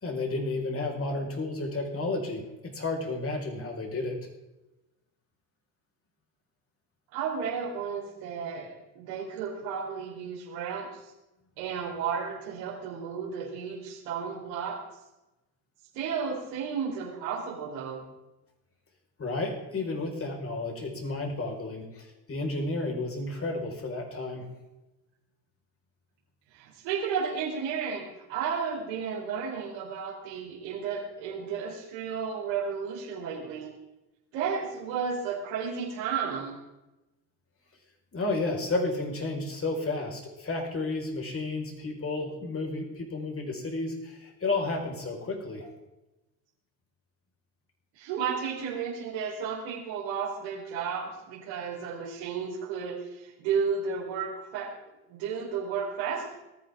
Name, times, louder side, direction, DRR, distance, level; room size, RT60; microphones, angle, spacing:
voice 1, 0.0-4.2 19.2-24.5 38.1-45.7, left 2 dB, 25° left, 2 dB, 4.7 m, -32 dB
voice 2, 7.1-11.0 11.6-14.8 15.9-18.1 26.5-33.7 34.3-36.6 48.0-54.7 55.1-56.3, right 6 dB, 65° right, -1 dB, 3.9 m, -33 dB
19.5 x 14.0 x 3.6 m, 0.98 s
hypercardioid pair, 65°, 49 cm